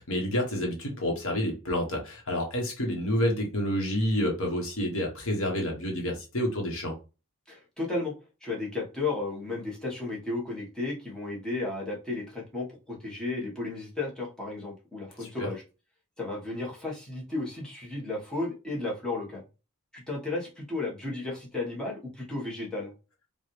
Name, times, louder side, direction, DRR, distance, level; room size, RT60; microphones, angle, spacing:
voice 1, 0.0-6.9 15.2-15.5, equal, 65° left, 1.2 m, -29 dB
voice 2, 7.5-8.1 8.4-15.6 16.2-19.4 19.9-22.9, left 2 dB, 5° left, 1.3 m, -34 dB
5.0 x 2.5 x 3.2 m
head